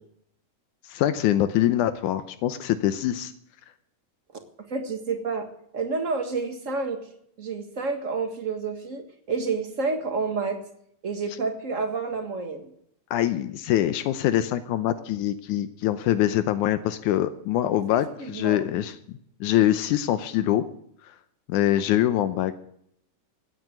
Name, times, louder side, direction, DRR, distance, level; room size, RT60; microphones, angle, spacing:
voice 1, 0.9-3.3 13.1-20.6 21.1-21.2 21.5-22.5, left 12 dB, 85° left, 11 dB, 2.3 m, -24 dB
voice 2, 4.7-5.5 5.7-7.0 7.4-10.6 11.0-12.7 17.9-18.6, right 4 dB, 35° right, 6 dB, 1.5 m, -29 dB
16.0 x 9.5 x 7.9 m, 0.69 s
omnidirectional pair, 3.4 m